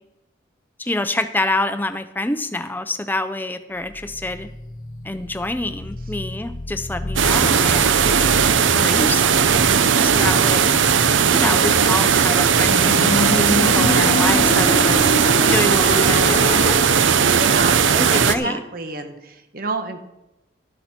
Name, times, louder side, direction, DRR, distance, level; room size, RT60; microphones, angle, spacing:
voice 1, 0.8-4.5 5.0-8.5 8.7-9.2 10.0-10.7 11.3-15.0 15.5-16.7 17.9-18.6, left 2 dB, 10° left, 11 dB, 0.6 m, -26 dB
sound 1, 3.9-17.1, left 2 dB, 45° left, 0.8 m, -28 dB
sound 2, 7.2-18.4, right 7 dB, 90° right, 0.7 m, -17 dB
voice 2, 17.3-20.1, right 3 dB, 50° right, 7 dB, 1.2 m, -29 dB
12.0 x 10.5 x 4.4 m, 0.90 s
head